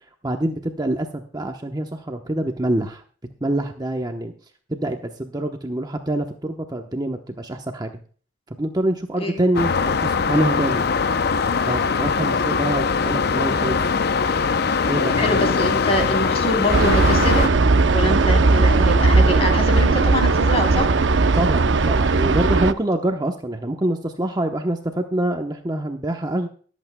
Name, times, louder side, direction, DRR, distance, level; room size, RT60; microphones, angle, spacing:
voice 1, 0.2-3.0 3.4-4.3 4.7-8.0 8.5-10.9 11.7-13.8 14.9-15.2 21.3-26.5, right 1 dB, 20° right, 4 dB, 0.9 m, -25 dB
sound 1, 9.5-17.5, left 5 dB, 55° left, 0.6 m, -21 dB
voice 2, 15.2-17.5 17.9-20.9, equal, 30° left, 4 dB, 3.6 m, -24 dB
sound 2, 16.7-22.7, right 3 dB, 65° right, 0.7 m, -17 dB
24.5 x 8.3 x 2.2 m, 0.43 s
head